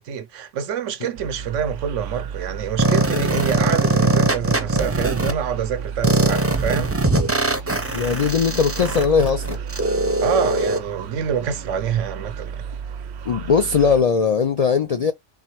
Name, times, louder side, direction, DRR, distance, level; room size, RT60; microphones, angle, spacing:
voice 1, 0.0-7.0 10.2-12.7, right 7 dB, 90° right, 1.1 m, -26 dB
sound 1, 1.2-14.0, right 6 dB, 70° right, 0.8 m, -33 dB
sound 2, 2.8-5.3 6.0-10.8, right 2 dB, 20° right, 0.4 m, -21 dB
voice 2, 7.9-9.6 13.3-15.1, left 5 dB, 70° left, 0.3 m, -19 dB
4.0 x 3.9 x 3.0 m
omnidirectional pair, 1.2 m